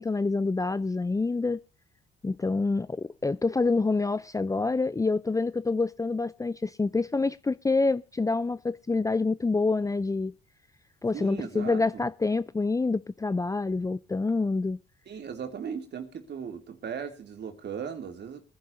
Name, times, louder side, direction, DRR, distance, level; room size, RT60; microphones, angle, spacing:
voice 1, 0.0-1.6 2.2-10.3 11.0-14.8, left 3 dB, 15° left, 0.6 m, -27 dB
voice 2, 11.1-12.1 15.1-18.4, right 7 dB, 60° right, 3.1 m, -37 dB
23.5 x 10.5 x 2.8 m
cardioid pair, 90°, 20 cm